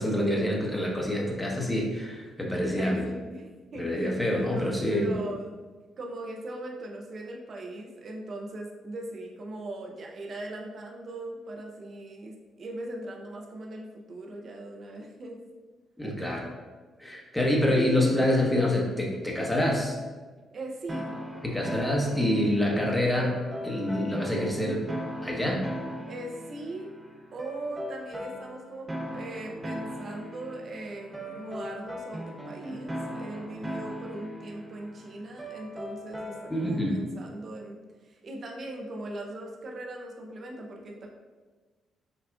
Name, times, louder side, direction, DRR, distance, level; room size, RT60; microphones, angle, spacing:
voice 1, 0.0-3.0 3.8-5.2 16.0-16.5 17.0-20.0 21.4-24.8 25.2-25.7 36.5-37.0, left 1 dB, 10° left, -1 dB, 1.1 m, -26 dB
voice 2, 2.8-5.6 6.0-15.4 20.5-21.1 26.1-26.9 27.3-41.1, right 1 dB, 55° right, 0 dB, 0.6 m, -39 dB
sound 1, 20.9-36.8, equal, 20° right, 0.8 m, -39 dB
6.7 x 2.3 x 2.3 m, 1.4 s
hypercardioid pair, 45°, 0 cm